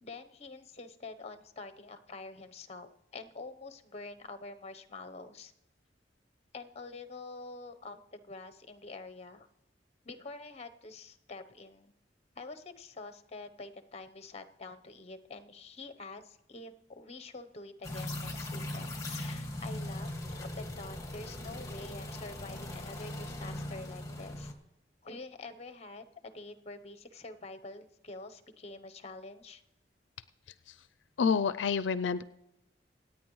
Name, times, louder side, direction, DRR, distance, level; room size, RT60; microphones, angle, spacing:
voice 1, 0.0-5.5 6.5-9.5 10.0-11.9 12.4-24.5 25.0-29.6, left 3 dB, 35° left, 9 dB, 0.9 m, -47 dB
sound 1, 17.8-24.5, left 1 dB, 20° left, 1.8 m, -39 dB
voice 2, 31.2-32.2, left 6 dB, 80° left, 13 dB, 0.4 m, -28 dB
26.5 x 9.1 x 3.1 m, 0.92 s
head